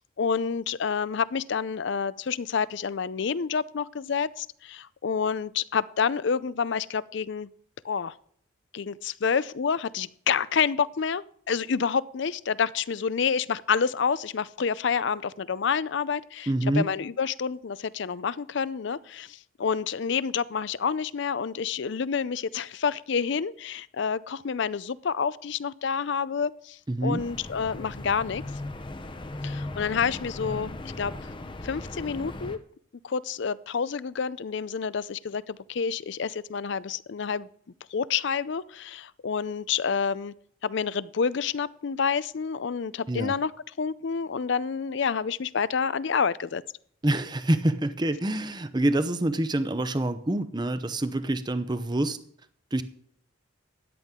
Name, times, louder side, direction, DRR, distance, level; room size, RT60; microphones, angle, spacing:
voice 1, 0.0-7.5 7.8-8.2 8.7-28.4 29.4-31.1 31.6-32.6 33.0-37.5 37.9-40.3 40.6-43.5 43.8-46.6, left 6 dB, 60° left, 18 dB, 0.4 m, -28 dB
voice 2, 16.5-16.9 26.9-27.2 43.1-43.3 47.0-52.2 52.7-52.8, right 1 dB, 20° right, 11 dB, 0.7 m, -26 dB
sound 1, 27.2-32.6, left 2 dB, 25° left, 0.7 m, -37 dB
13.5 x 10.5 x 3.7 m, 0.63 s
head